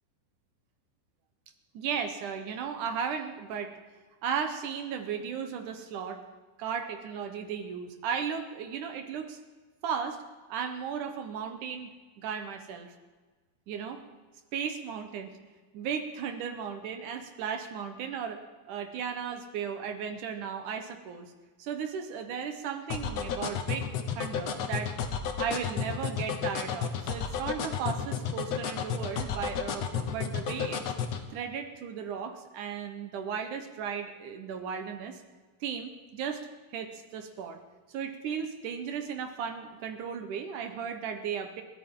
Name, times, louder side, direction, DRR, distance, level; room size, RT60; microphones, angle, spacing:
voice 1, 1.7-3.7 4.2-6.2 6.6-9.4 9.8-10.2 10.5-11.9 12.2-12.9 13.7-14.0 14.5-15.4 15.7-18.4 18.7-21.3 21.6-23.9 24.2-24.9 25.4-30.9 31.3-35.2 35.6-36.5 36.7-37.6 37.9-41.6, right 7 dB, 65° right, 6 dB, 2.2 m, -35 dB
sound 1, 22.9-31.2, left 7 dB, 75° left, 1.5 m, -31 dB
29.0 x 13.0 x 3.8 m, 1.4 s
omnidirectional pair, 4.5 m